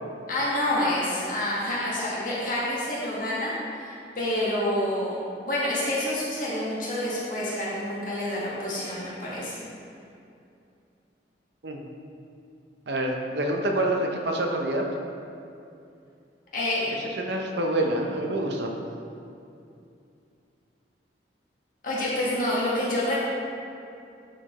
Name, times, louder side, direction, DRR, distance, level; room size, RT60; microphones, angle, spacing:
voice 1, 0.3-5.2 5.4-9.5 16.5-16.9 21.8-23.2, left 1 dB, 50° left, -7 dB, 1.5 m, -28 dB
voice 2, 12.9-14.9 17.2-18.7, right 1 dB, 75° right, 1 dB, 0.7 m, -27 dB
10.5 x 4.4 x 3.1 m, 2.6 s
head